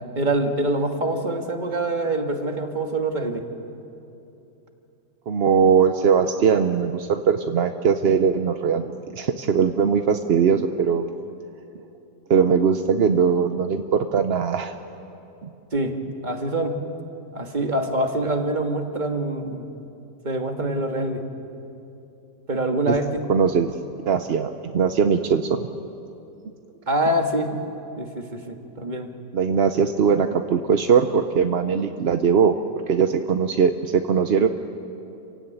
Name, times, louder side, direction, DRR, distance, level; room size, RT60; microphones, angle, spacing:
voice 1, 0.0-3.4 15.7-15.9 16.2-16.8 17.3-19.7 20.2-21.2 22.5-23.2 26.9-27.6 28.0-29.1, right 1 dB, 25° right, 4 dB, 1.7 m, -25 dB
voice 2, 5.3-8.8 9.1-11.1 12.3-13.8 14.1-14.7 22.9-23.0 23.3-23.7 24.1-25.7 29.3-32.5 32.9-34.5, right 6 dB, 55° right, 7 dB, 0.7 m, -20 dB
28.5 x 16.5 x 9.1 m, 2.8 s
omnidirectional pair, 1.8 m